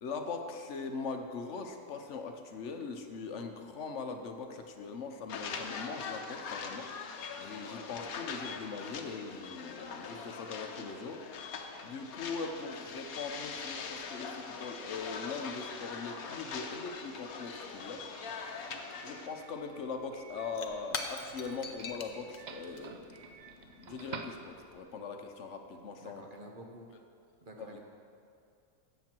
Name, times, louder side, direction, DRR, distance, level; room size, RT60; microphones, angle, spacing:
voice 1, 0.0-6.9 7.4-11.2 11.8-18.0 19.0-23.1 23.8-26.2 27.7-27.8, left 4 dB, 60° left, 5 dB, 1.1 m, -41 dB
sound 1, 5.3-19.3, left 5 dB, 85° left, 1.3 m, -42 dB
Doorbell, 15.9-25.0, right 5 dB, 60° right, 0.4 m, -51 dB
Shatter / Crushing, 19.6-19.7 19.9-24.8, left 4 dB, 45° left, 0.6 m, -44 dB
voice 2, 26.0-26.9 27.4-27.8, right 1 dB, 40° right, 1 dB, 1.1 m, -49 dB
13.5 x 8.2 x 4.5 m, 2.4 s
omnidirectional pair, 1.5 m